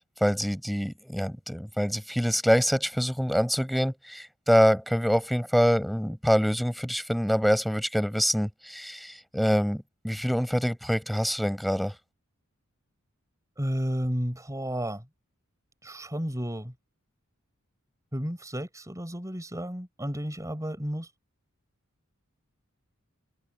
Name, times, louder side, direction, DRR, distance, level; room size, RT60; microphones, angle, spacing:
voice 1, 0.2-11.9, equal, ahead, 5.7 m, -25 dB
voice 2, 13.6-15.0 15.8-16.7 18.1-21.1, equal, 15° right, 4.6 m, -32 dB
head